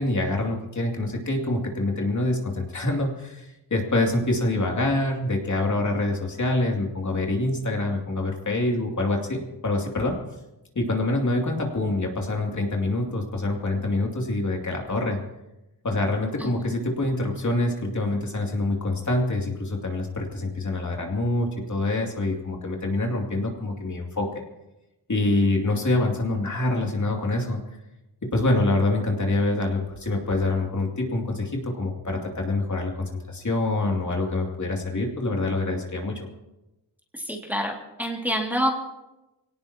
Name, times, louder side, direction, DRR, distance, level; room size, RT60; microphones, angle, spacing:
voice 1, 0.0-10.2 10.7-15.2 15.8-24.4 25.1-27.6 28.3-36.3, left 2 dB, 45° left, 0 dB, 2.8 m, -26 dB
voice 2, 37.1-38.7, equal, 5° right, -1 dB, 2.4 m, -27 dB
24.0 x 17.5 x 2.9 m, 0.98 s
wide cardioid pair, 95°, 42 cm